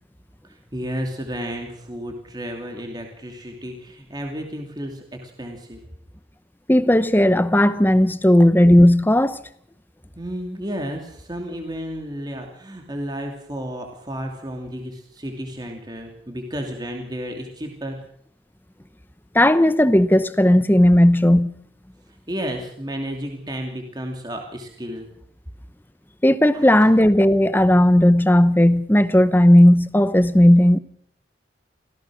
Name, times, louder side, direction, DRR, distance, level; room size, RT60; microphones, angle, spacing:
voice 1, 0.4-5.8 10.1-18.0 22.3-25.1 26.5-26.9, equal, 20° right, 2.8 m, -32 dB
voice 2, 6.7-9.4 19.3-21.5 26.2-30.8, left 1 dB, 10° left, 0.8 m, -15 dB
25.5 x 16.5 x 6.4 m
head